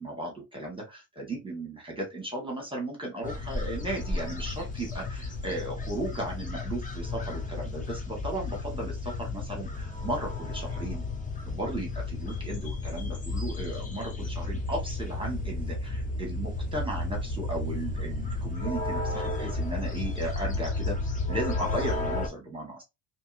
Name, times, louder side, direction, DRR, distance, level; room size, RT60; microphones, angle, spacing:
voice 1, 0.0-11.0 11.4-21.0 21.3-22.8, right 1 dB, 10° right, 0 dB, 1.2 m, -35 dB
sound 1, 3.2-22.3, left 2 dB, 15° left, 0.6 m, -33 dB
2.7 x 2.7 x 2.5 m, 0.22 s
supercardioid pair, 95°, 49 cm